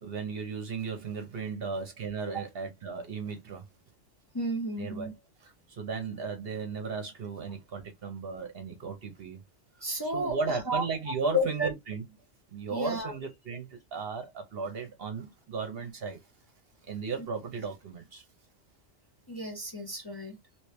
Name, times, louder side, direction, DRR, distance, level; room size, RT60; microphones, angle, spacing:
voice 1, 0.0-3.7 4.8-5.1 5.4-9.4 10.0-12.0 12.5-16.2 16.9-18.2, right 5 dB, 55° right, 0.9 m, -35 dB
voice 2, 4.3-5.1 9.8-10.9 11.3-11.7 12.7-13.1 17.2-17.3 19.3-20.4, equal, 20° left, 0.8 m, -32 dB
3.1 x 3.1 x 3.1 m
omnidirectional pair, 1.3 m